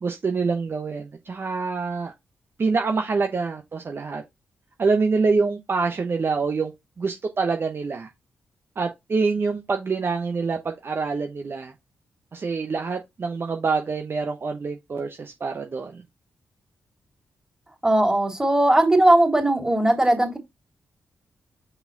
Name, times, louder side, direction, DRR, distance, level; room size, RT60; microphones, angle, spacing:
voice 1, 0.0-2.1 2.6-4.2 4.8-6.7 7.0-8.1 8.8-11.7 12.3-16.0, right 4 dB, 50° right, 0.9 m, -26 dB
voice 2, 17.8-20.4, right 1 dB, 15° right, 3.0 m, -18 dB
5.7 x 4.2 x 3.9 m
supercardioid pair, 40°, 5 cm